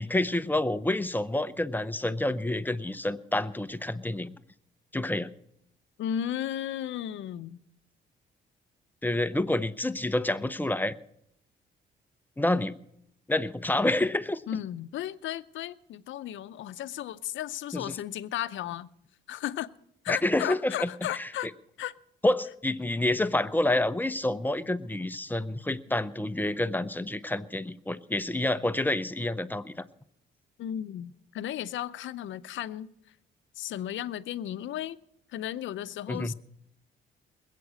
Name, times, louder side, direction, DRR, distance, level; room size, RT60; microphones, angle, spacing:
voice 1, 0.0-4.3 4.9-5.3 9.0-10.9 12.4-12.8 13.3-14.4 17.7-18.0 20.1-21.3 22.2-29.8 36.1-36.3, left 1 dB, 10° left, 0.7 m, -28 dB
voice 2, 6.0-7.6 14.5-18.9 19.3-19.7 20.0-21.5 21.8-21.9 30.6-32.9 33.6-35.0 35.3-36.3, left 11 dB, 75° left, 0.7 m, -34 dB
21.0 x 8.4 x 6.4 m
cardioid pair, 90°, 20 cm